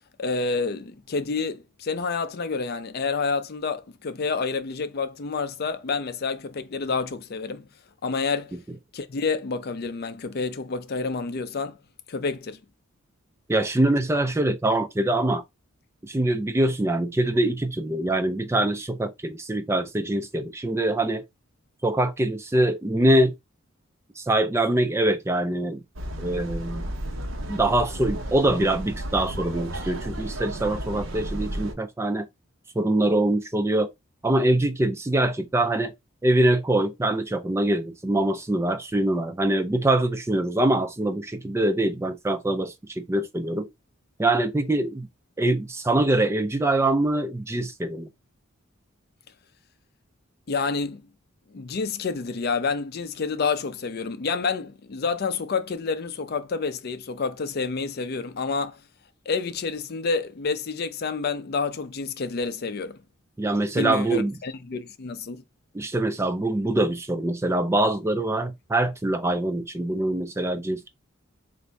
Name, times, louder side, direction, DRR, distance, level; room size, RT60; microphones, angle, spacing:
voice 1, 0.2-7.7 8.0-8.6 8.9-11.8 12.1-12.6 50.5-51.0 51.5-58.8 59.3-63.0 63.8-65.4, left 4 dB, 50° left, 0.5 m, -28 dB
voice 2, 13.5-15.4 16.0-21.2 21.8-23.3 24.2-25.8 26.2-26.8 27.5-32.3 32.8-33.9 34.2-35.9 36.2-43.7 44.2-45.1 45.4-48.1 63.4-64.3 65.7-70.9, right 1 dB, 15° right, 0.3 m, -24 dB
sound 1, 26.0-31.7, right 1 dB, 65° right, 0.8 m, -33 dB
4.1 x 2.6 x 3.3 m
head